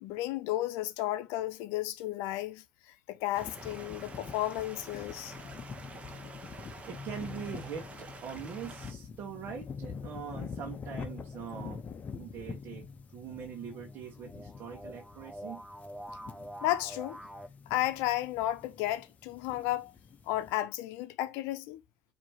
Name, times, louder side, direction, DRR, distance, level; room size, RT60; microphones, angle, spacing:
voice 1, 0.0-2.6 3.1-5.5 16.6-17.2 17.7-19.9 20.3-21.8, left 15 dB, 75° left, 0.6 m, -33 dB
sound 1, 3.3-20.5, left 5 dB, 35° left, 0.8 m, -45 dB
Stream, 3.3-8.9, right 4 dB, 30° right, 1.0 m, -49 dB
voice 2, 6.5-11.8 12.2-12.8 13.1-15.6, right 7 dB, 55° right, 1.1 m, -42 dB
sound 2, 12.2-17.5, equal, ahead, 0.5 m, -47 dB
4.6 x 2.8 x 2.9 m
supercardioid pair, 95°, 4 cm